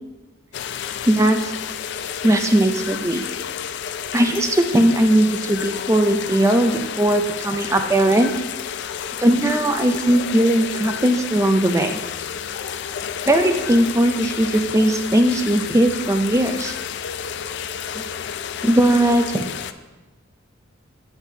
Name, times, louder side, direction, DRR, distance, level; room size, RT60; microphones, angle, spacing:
sound 1, 0.5-19.7, left 8 dB, 55° left, 0.3 m, -31 dB
voice 1, 1.1-1.5 2.2-3.3 4.1-8.3 9.2-12.0 13.3-16.7 17.9-18.1 18.6-19.4, right 1 dB, 15° right, 6 dB, 0.4 m, -18 dB
8.0 x 7.3 x 2.7 m, 1.2 s
head